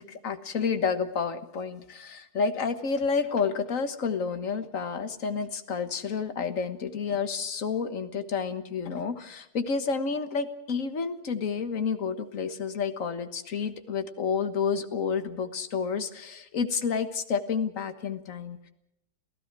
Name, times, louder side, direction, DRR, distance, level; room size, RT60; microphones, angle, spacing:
voice 1, 0.0-18.7, left 5 dB, 40° left, 9 dB, 1.5 m, -30 dB
28.0 x 16.0 x 6.1 m, 0.84 s
omnidirectional pair, 2.4 m